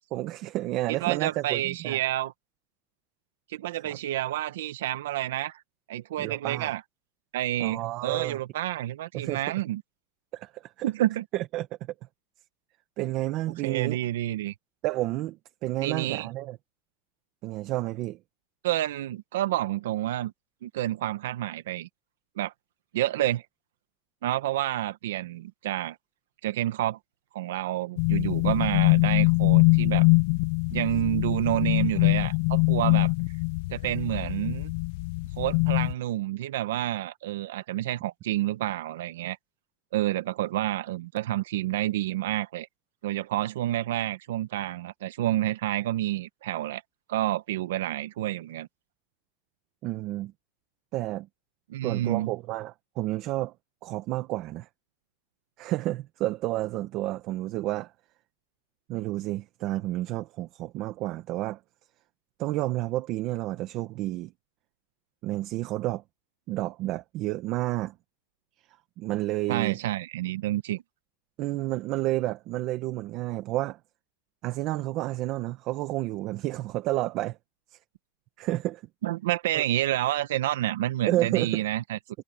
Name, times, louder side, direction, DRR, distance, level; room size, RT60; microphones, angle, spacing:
voice 1, 0.1-2.0 3.8-4.0 6.2-6.7 7.6-8.4 9.1-9.4 10.3-10.9 11.3-11.7 13.0-14.0 14.8-15.4 15.6-16.6 17.4-18.2 49.8-50.3 50.9-51.3 51.8-53.5 53.8-54.7 55.6-57.9 58.9-61.6 62.4-64.3 65.2-66.0 66.5-67.9 69.0-69.8 71.4-73.8 74.4-77.4 77.7-77.8 78.4-78.8 79.5-79.6 81.1-81.6, right 16 dB, 40° right, 1.1 m, -30 dB
voice 2, 0.9-2.3 3.5-5.6 5.9-6.8 7.3-9.8 10.8-11.2 13.6-14.5 15.8-16.3 18.6-20.3 20.6-21.9 22.4-22.5 22.9-23.4 24.2-26.0 26.4-27.0 27.3-30.1 30.7-33.1 33.7-34.7 35.4-39.4 39.9-42.7 43.0-46.8 47.1-48.7 51.7-52.3 69.5-70.8 79.0-82.0, right 14 dB, 90° right, 1.0 m, -29 dB
sound 1, 28.0-35.9, left 27 dB, 55° left, 0.6 m, -23 dB
supercardioid pair, 165°, 0 cm